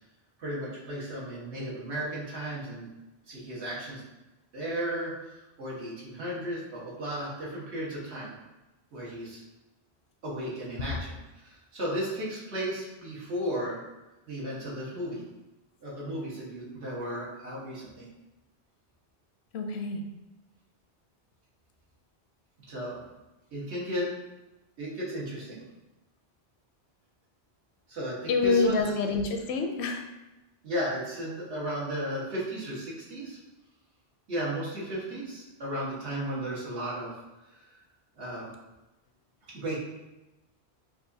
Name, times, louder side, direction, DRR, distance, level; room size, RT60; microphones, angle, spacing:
voice 1, 0.4-2.9 3.3-4.0 4.5-8.3 8.9-9.4 10.2-11.2 11.4-13.8 14.3-15.2 15.8-18.1 22.7-23.0 23.5-24.1 24.8-25.6 27.9-28.9 30.6-33.4 34.3-37.1 37.5-37.7 38.2-38.5 39.5-39.8, right 1 dB, 80° right, -6 dB, 1.6 m, -34 dB
voice 2, 19.5-20.0 28.3-30.0, left 4 dB, 75° left, 4 dB, 0.8 m, -27 dB
5.8 x 2.5 x 2.7 m, 1.0 s
omnidirectional pair, 1.1 m